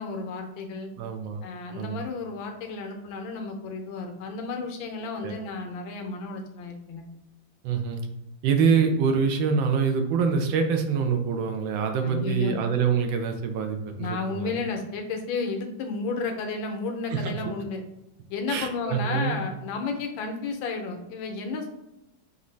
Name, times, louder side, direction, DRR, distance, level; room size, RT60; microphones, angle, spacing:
voice 1, 0.0-0.9 1.4-7.0 12.0-12.6 14.0-17.8 18.3-21.7, left 4 dB, 85° left, 4 dB, 1.4 m, -32 dB
voice 2, 1.0-1.4 1.8-2.0 5.2-5.4 7.6-8.0 8.4-14.6 17.1-17.4 18.5-19.4, right 6 dB, 80° right, 5 dB, 1.4 m, -25 dB
5.2 x 2.6 x 3.1 m, 0.91 s
omnidirectional pair, 2.1 m